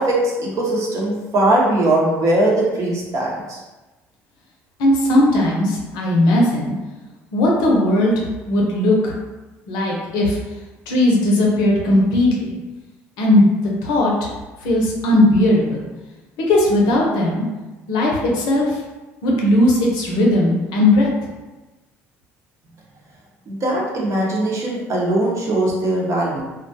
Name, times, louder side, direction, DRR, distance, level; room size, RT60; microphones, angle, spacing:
voice 1, 0.0-3.6 23.5-26.4, right 1 dB, 50° right, -3 dB, 0.8 m, -20 dB
voice 2, 4.8-6.7 7.3-8.1 8.5-9.1 9.7-10.4 10.9-12.5 13.2-13.4 13.8-14.3 14.6-15.8 16.5-17.4 17.9-18.8 19.2-21.1, left 1 dB, 75° left, -2 dB, 0.7 m, -17 dB
2.3 x 2.2 x 2.7 m, 1.1 s
hypercardioid pair, 70°, 7 cm